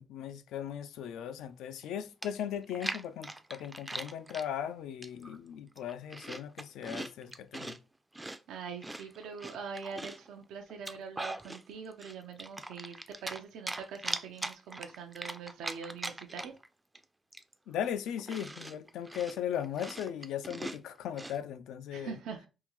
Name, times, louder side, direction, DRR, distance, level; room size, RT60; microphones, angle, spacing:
voice 1, 0.0-7.8 17.7-22.2, left 9 dB, 85° left, 0.3 m, -38 dB
Chewing mastication, 1.8-1.9 2.2-4.5 5.0-5.4 5.7-7.8 8.1-10.3 10.7-11.6 12.0-13.4 13.7-16.7 16.9-17.0 17.3-21.4, right 1 dB, 15° right, 0.3 m, -41 dB
voice 2, 8.5-16.5 21.9-22.5, right 6 dB, 85° right, 0.5 m, -43 dB
3.6 x 2.3 x 3.0 m
cardioid pair, 90°, 0 cm